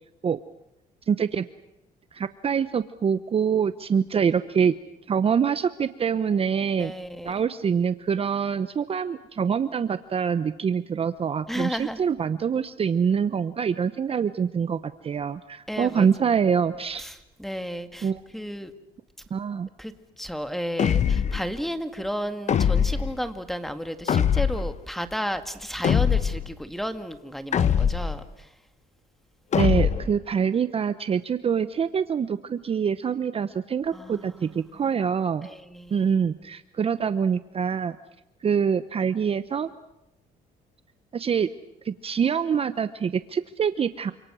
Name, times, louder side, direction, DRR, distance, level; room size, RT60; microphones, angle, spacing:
voice 1, 1.1-1.5 2.1-4.7 5.1-6.9 7.2-17.1 18.0-18.2 19.3-19.7 29.5-35.5 35.9-38.0 38.4-39.7 41.1-41.5 41.8-44.1, right 7 dB, 35° right, 13 dB, 0.9 m, -25 dB
voice 2, 6.8-7.3 11.5-12.0 15.7-16.4 17.0-18.7 19.8-28.5 33.9-34.8 35.4-36.1, equal, ahead, 9 dB, 2.0 m, -33 dB
sound 1, 20.8-21.5 22.5-23.1 24.1-24.7 25.8-26.5 27.5-28.2 29.5-30.2, left 8 dB, 45° left, 1.1 m, -22 dB
29.0 x 26.5 x 6.3 m, 0.87 s
cardioid pair, 110°, 17 cm